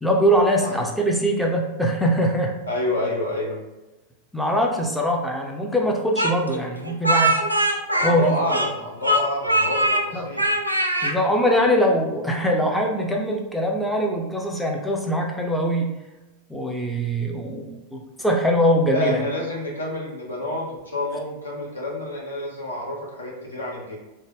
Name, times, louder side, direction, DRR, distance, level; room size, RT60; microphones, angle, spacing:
voice 1, 0.0-2.6 4.3-7.4 8.0-8.4 10.1-10.3 11.0-15.9 16.5-19.2, equal, ahead, 0 dB, 0.4 m, -22 dB
voice 2, 2.7-3.6 7.9-10.4 18.9-24.0, left 1 dB, 75° left, -2 dB, 0.8 m, -28 dB
Speech, 6.2-8.8 9.0-10.0 10.4-11.1, right 1 dB, 85° right, 0.3 m, -21 dB
3.2 x 2.0 x 3.3 m, 1.0 s
figure-of-eight pair, 90°, 0 cm